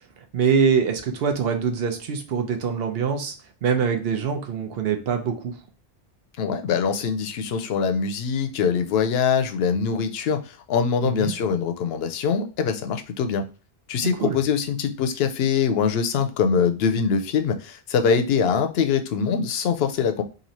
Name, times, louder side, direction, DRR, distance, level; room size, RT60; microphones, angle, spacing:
voice 1, 0.3-3.4 3.6-5.6 11.0-11.3 14.2-14.4, right 6 dB, 70° right, 6 dB, 0.9 m, -24 dB
voice 2, 6.4-13.5 13.9-20.2, left 6 dB, 75° left, 7 dB, 0.8 m, -23 dB
3.0 x 2.7 x 4.0 m, 0.35 s
omnidirectional pair, 1.1 m